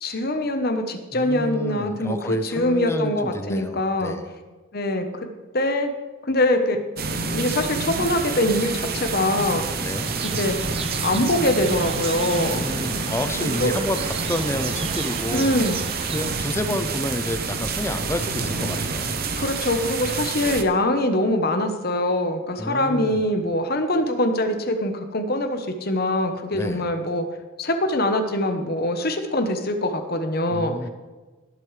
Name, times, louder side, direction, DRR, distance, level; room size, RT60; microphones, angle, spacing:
voice 1, 0.0-4.2 4.7-5.0 5.5-5.9 6.3-6.8 7.1-9.7 10.2-10.6 11.0-12.7 13.4-13.8 15.3-15.8 19.3-27.2 27.6-30.9, left 1 dB, 45° left, 6 dB, 1.1 m, -23 dB
voice 2, 1.1-4.3 9.7-10.1 12.4-15.5 16.1-19.1 20.4-20.6 22.6-23.2 26.5-26.8 30.5-30.9, left 1 dB, 10° left, 8 dB, 0.6 m, -29 dB
sound 1, 7.0-20.6, right 4 dB, 45° right, 0.8 m, -28 dB
sound 2, 9.9-16.3, right 4 dB, 25° right, 0.5 m, -33 dB
19.5 x 8.1 x 3.3 m, 1.3 s
head